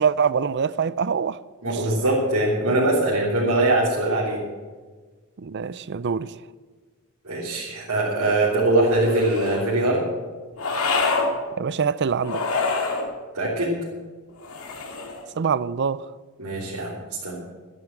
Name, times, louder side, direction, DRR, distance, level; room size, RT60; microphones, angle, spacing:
voice 1, 0.0-1.4 1.7-1.8 5.4-6.3 11.6-12.6 15.4-16.1, right 6 dB, 50° right, 0.5 m, -24 dB
voice 2, 1.6-4.4 7.2-10.0 13.3-13.7 16.4-16.9 17.2-17.4, right 2 dB, 75° right, 3.5 m, -22 dB
sound 1, 8.8-9.7 10.6-11.3 12.2-13.1 14.4-15.3, left 3 dB, 75° left, 2.1 m, -26 dB
12.5 x 11.0 x 7.7 m
head